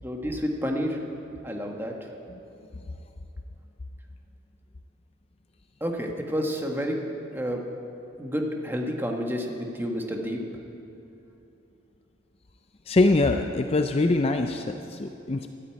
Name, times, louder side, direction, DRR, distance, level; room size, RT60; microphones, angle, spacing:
voice 1, 0.0-1.0 1.4-2.1 5.8-7.0 7.3-7.7 8.2-10.4, equal, 10° right, 1 dB, 1.3 m, -30 dB
voice 2, 12.9-15.5, left 2 dB, 30° left, 6 dB, 0.4 m, -23 dB
12.5 x 9.4 x 8.7 m, 2.8 s
head